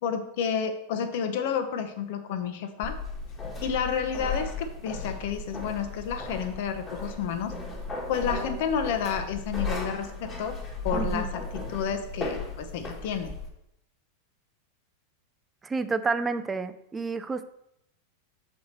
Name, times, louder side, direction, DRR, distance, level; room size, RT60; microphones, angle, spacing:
voice 1, 0.0-2.9 3.6-7.6 8.1-10.6 10.8-13.3, left 7 dB, 60° left, 8 dB, 0.9 m, -30 dB
sound 1, 2.8-13.5, left 3 dB, 20° left, 1.4 m, -35 dB
voice 2, 10.9-11.3 15.6-17.5, right 4 dB, 15° right, 10 dB, 0.4 m, -30 dB
6.2 x 4.6 x 4.3 m, 0.80 s
supercardioid pair, 145°, 0 cm